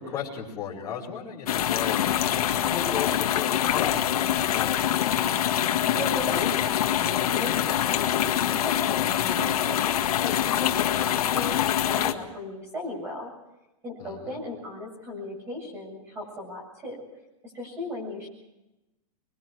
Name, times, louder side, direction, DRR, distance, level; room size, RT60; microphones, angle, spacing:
voice 1, 0.0-5.4 14.0-14.4, left 7 dB, 15° left, -7 dB, 5.4 m, -36 dB
sound 1, 1.5-12.1, left 11 dB, 70° left, 1.8 m, -25 dB
voice 2, 5.9-9.8 10.2-13.3 13.8-17.0 17.4-18.3, left 2 dB, 15° right, 0 dB, 7.4 m, -37 dB
26.0 x 22.5 x 4.8 m, 0.96 s
supercardioid pair, 180°, 20 cm